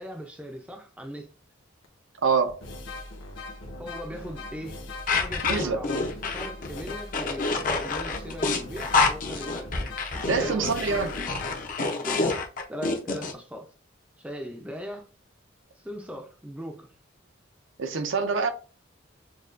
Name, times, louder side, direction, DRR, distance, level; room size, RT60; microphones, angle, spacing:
voice 1, 0.0-1.3 3.8-4.8 5.1-9.9 10.4-11.2 12.0-13.7 14.2-15.1 15.8-16.9, equal, 5° right, 0.5 m, -39 dB
sound 1, 1.8-1.9 2.5-11.5, left 2 dB, 65° left, 1.0 m, -40 dB
voice 2, 2.2-2.6 5.5-5.8 10.3-11.1 17.8-18.5, right 5 dB, 65° right, 0.6 m, -25 dB
sound 2, 5.1-13.3, left 3 dB, 40° left, 0.6 m, -27 dB
6.6 x 2.3 x 2.5 m
head